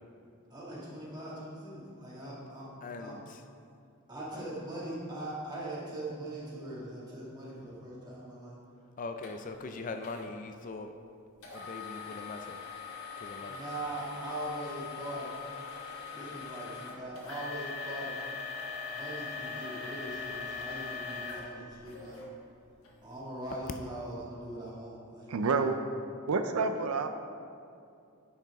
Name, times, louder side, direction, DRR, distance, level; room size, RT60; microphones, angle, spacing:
voice 1, 0.5-2.7 3.0-3.1 4.1-8.6 13.5-15.3 16.1-18.1 18.9-22.3 23.0-25.7, right 1 dB, 20° right, -7 dB, 2.0 m, -41 dB
voice 2, 2.8-3.4 9.0-10.9 11.5-12.6 13.2-13.6, left 3 dB, 40° left, 6 dB, 0.4 m, -41 dB
sound 1, 9.2-9.3 10.0-10.3 11.4-22.3 22.8-22.9 23.5-23.7, left 5 dB, 80° left, 1.4 m, -41 dB
voice 3, 25.3-25.8 26.3-27.1, right 4 dB, 90° right, 8 dB, 0.5 m, -28 dB
10.0 x 5.8 x 3.5 m, 2.5 s
head